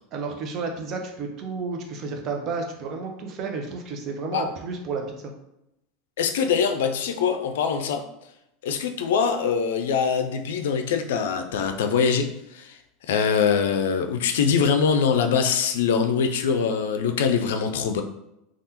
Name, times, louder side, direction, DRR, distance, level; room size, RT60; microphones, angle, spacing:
voice 1, 0.1-5.3, right 4 dB, 45° right, 3 dB, 0.7 m, -31 dB
voice 2, 6.2-8.0 8.6-12.8 13.1-18.0, left 6 dB, 75° left, 6 dB, 0.4 m, -23 dB
3.4 x 2.4 x 2.9 m, 0.84 s
hypercardioid pair, 90°, 0 cm